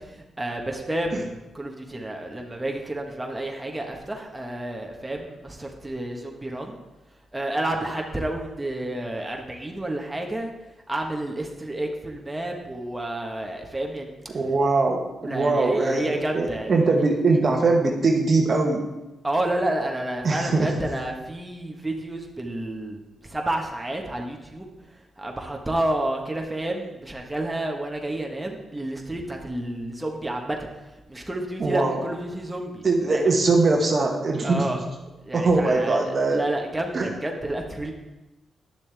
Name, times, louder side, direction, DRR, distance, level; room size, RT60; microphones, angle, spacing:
voice 1, 0.0-6.8 7.3-10.5 10.9-14.3 15.2-16.7 19.2-24.7 25.2-30.6 31.1-33.3 34.4-34.8 35.2-37.9, right 1 dB, 15° right, 1 dB, 1.4 m, -30 dB
voice 2, 14.3-18.9 20.2-20.7 31.6-32.0 32.8-34.8 35.3-36.4 36.9-37.1, right 3 dB, 50° right, 1 dB, 1.3 m, -22 dB
10.0 x 6.9 x 3.5 m, 1.0 s
supercardioid pair, 50°, 0 cm